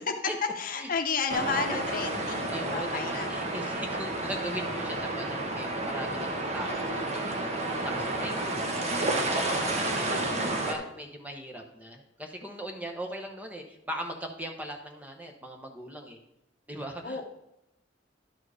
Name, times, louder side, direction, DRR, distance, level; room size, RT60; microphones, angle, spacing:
voice 1, 0.6-3.7 8.4-8.9 17.0-17.3, left 4 dB, 50° left, 5 dB, 0.9 m, -33 dB
voice 2, 1.3-1.8 2.2-16.2 16.7-17.2, right 1 dB, 10° right, 2 dB, 0.9 m, -40 dB
sound 1, 1.3-10.7, right 2 dB, 35° right, 1.1 m, -31 dB
11.0 x 4.5 x 4.9 m, 0.88 s
head